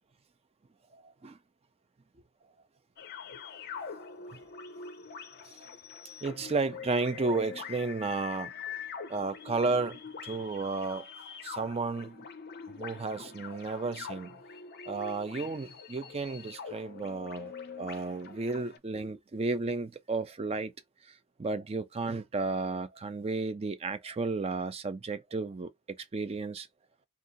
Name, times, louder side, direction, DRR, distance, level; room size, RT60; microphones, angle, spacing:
voice 1, 1.0-1.4 4.0-4.1 4.3-4.4 5.5-5.7 6.2-8.5 9.1-11.1 11.4-12.3 12.8-14.4 14.9-20.7 21.0-26.7, right 3 dB, 30° right, 0.4 m, -33 dB
sound 1, 3.0-18.8, left 6 dB, 50° left, 0.5 m, -44 dB
2.8 x 2.4 x 3.7 m
head